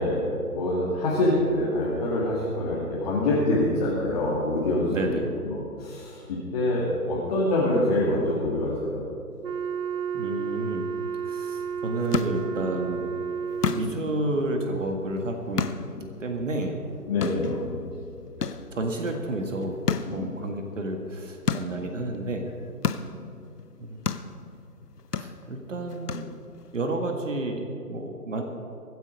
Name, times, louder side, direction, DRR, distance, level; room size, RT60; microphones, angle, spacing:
voice 1, 0.0-5.2 5.4-9.0 17.1-17.5, left 1 dB, 25° left, -6 dB, 2.1 m, -25 dB
voice 2, 4.9-5.3 10.1-10.9 11.2-13.0 13.7-15.7 16.0-16.8 18.7-19.7 20.1-22.5 23.8-24.0 25.1-26.3 26.7-28.4, right 2 dB, 50° right, 4 dB, 1.8 m, -30 dB
Wind instrument woodwind instrument, 9.4-14.1, right 7 dB, 70° right, 0.7 m, -31 dB
sound 1, 11.6-26.8, left 6 dB, 75° left, 1.0 m, -34 dB
23.5 x 8.2 x 5.3 m, 2.6 s
figure-of-eight pair, 150°, 47 cm